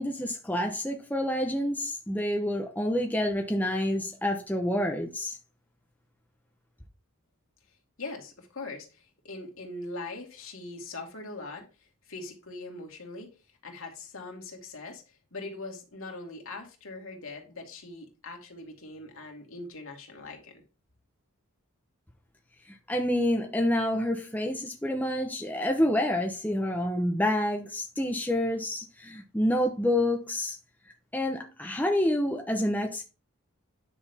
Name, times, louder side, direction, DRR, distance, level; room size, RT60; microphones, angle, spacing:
voice 1, 0.0-5.4 22.7-30.6 31.1-33.0, left 1 dB, 10° left, 0.9 m, -28 dB
voice 2, 8.0-13.3 13.6-20.6, left 2 dB, 65° left, 2.4 m, -41 dB
9.9 x 6.4 x 3.6 m
head